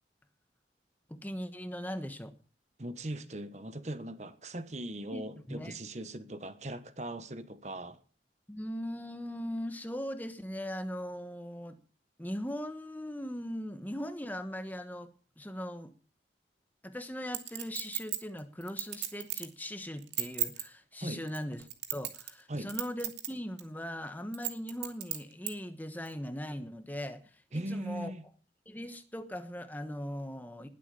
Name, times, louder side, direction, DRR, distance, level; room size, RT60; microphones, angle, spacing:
voice 1, 1.1-2.3 5.1-5.2 5.5-5.8 8.5-11.8 12.2-15.1 15.4-15.9 16.8-28.1 28.7-30.7, equal, 10° left, 1.3 m, -39 dB
voice 2, 2.8-8.0 21.0-21.2 22.5-22.7 27.5-28.2, right 1 dB, 40° right, 1.3 m, -39 dB
Chink clink, 17.3-19.5 20.0-20.6 21.3-22.4 22.7-23.3 23.6-23.7 24.3-25.5 26.1-26.2, right 12 dB, 85° right, 2.7 m, -34 dB
20.5 x 8.4 x 6.9 m
head